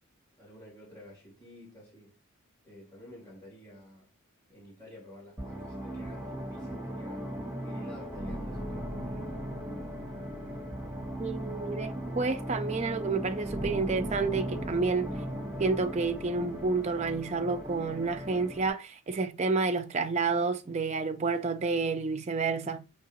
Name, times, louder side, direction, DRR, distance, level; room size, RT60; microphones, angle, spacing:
voice 1, 0.4-2.1 2.6-4.1 4.5-9.5, left 1 dB, 15° left, 2.6 m, -51 dB
sound 1, 5.4-18.7, equal, 5° right, 1.4 m, -37 dB
voice 2, 11.2-15.1 15.6-22.8, right 4 dB, 30° right, 0.4 m, -30 dB
4.7 x 3.3 x 2.9 m
head